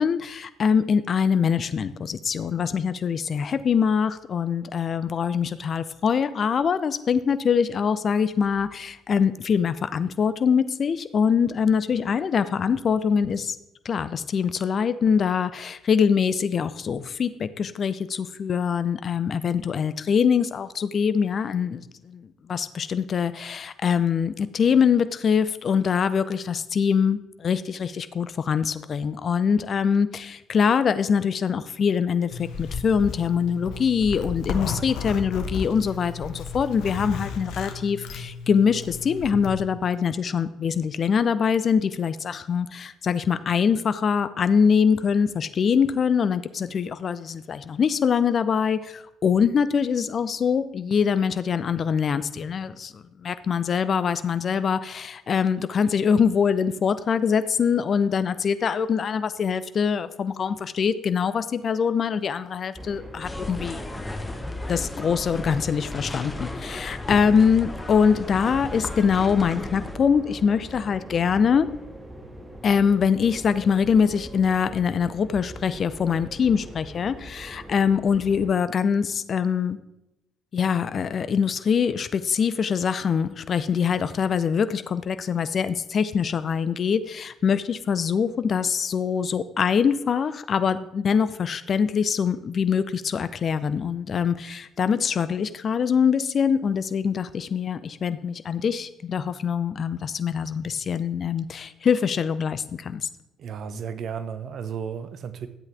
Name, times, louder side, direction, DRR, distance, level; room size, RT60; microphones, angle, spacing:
voice 1, 0.0-13.6 13.8-63.8 64.7-71.7 72.6-79.8 80.5-103.1, left 6 dB, 45° left, 0.6 m, -23 dB
Zipper (clothing), 32.3-39.6, left 5 dB, 65° left, 1.0 m, -34 dB
sound 1, 62.7-78.5, right 1 dB, 15° right, 1.7 m, -42 dB
sound 2, 63.2-69.9, left 2 dB, 20° left, 1.2 m, -35 dB
voice 2, 103.4-105.5, right 7 dB, 55° right, 0.8 m, -33 dB
12.0 x 8.1 x 3.4 m
hypercardioid pair, 50°, 0 cm